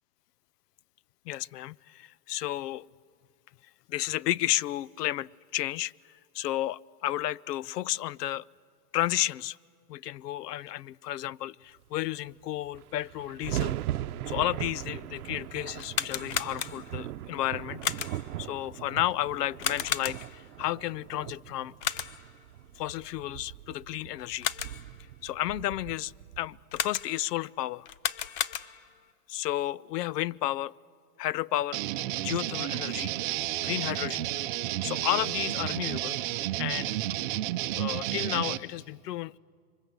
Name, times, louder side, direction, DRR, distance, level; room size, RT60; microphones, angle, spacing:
voice 1, 1.3-2.9 3.9-8.4 8.9-9.6 9.9-13.8 14.3-17.8 18.4-21.7 22.7-24.5 25.2-27.9 29.3-30.7 31.2-31.8 32.2-33.1 33.6-34.3 34.8-36.2 36.6-37.0 37.8-39.4, left 14 dB, 80° left, 0.6 m, -32 dB
sound 1, 12.3-12.4 12.6-26.9, right 13 dB, 65° right, 0.8 m, -39 dB
sound 2, 15.7-17.0 17.8-18.4 19.6-20.5 21.8-22.4 24.2-24.9 26.7-27.3 27.8-29.0, left 10 dB, 35° left, 0.6 m, -33 dB
sound 3, 31.7-38.6, right 15 dB, 30° right, 0.6 m, -31 dB
27.0 x 24.0 x 8.0 m
supercardioid pair, 155°, 47 cm